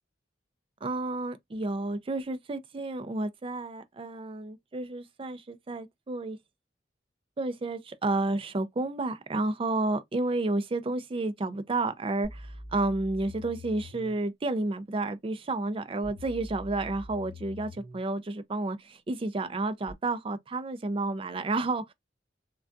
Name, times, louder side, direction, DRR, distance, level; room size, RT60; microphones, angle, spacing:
voice 1, 0.8-6.4 7.4-21.9, right 2 dB, 30° right, 0.4 m, -31 dB
sound 1, 12.2-14.2 16.0-18.0 19.9-20.0, left 1 dB, 15° right, 1.3 m, -44 dB
3.4 x 2.3 x 2.5 m
head